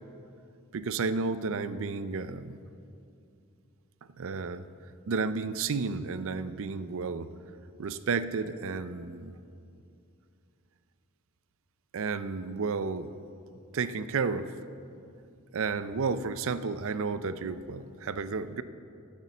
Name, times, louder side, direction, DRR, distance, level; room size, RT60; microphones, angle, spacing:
voice 1, 0.7-2.6 4.2-4.7 5.1-7.3 7.8-9.4 11.9-13.2 13.7-14.5 15.5-18.6, right 4 dB, 60° right, 13 dB, 0.5 m, -32 dB
9.8 x 9.2 x 7.2 m, 2.6 s
head